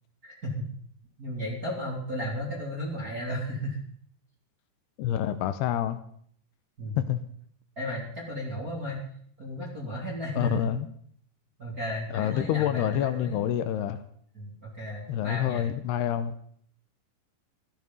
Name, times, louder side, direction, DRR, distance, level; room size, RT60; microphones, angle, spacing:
voice 1, 0.2-0.7 1.2-3.8 6.8-7.0 7.8-9.0 9.4-10.7 11.6-13.4 14.3-15.6, equal, 25° right, -3 dB, 2.7 m, -34 dB
voice 2, 5.0-6.0 7.0-7.2 10.4-10.9 12.1-14.0 15.1-16.4, left 11 dB, 80° left, 11 dB, 2.7 m, -27 dB
16.5 x 13.0 x 5.4 m, 0.62 s
omnidirectional pair, 5.1 m